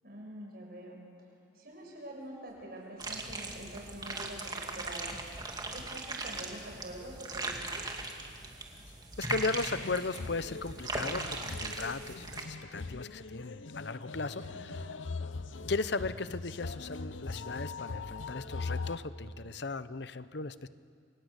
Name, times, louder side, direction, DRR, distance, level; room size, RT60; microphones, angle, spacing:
voice 1, 0.0-1.0 1.5-5.2 5.7-7.9 14.4-15.0, right 1 dB, 55° right, -1 dB, 6.9 m, -46 dB
sound 1, 3.0-12.4, right 2 dB, 20° right, 2.4 m, -39 dB
sound 2, 5.8-5.9 7.3-7.6 7.9-8.0 9.7-19.0, left 3 dB, 90° left, 0.9 m, -41 dB
voice 2, 9.2-14.9 15.7-20.7, left 3 dB, 60° left, 14 dB, 0.8 m, -36 dB
28.5 x 24.5 x 8.3 m, 2.3 s
head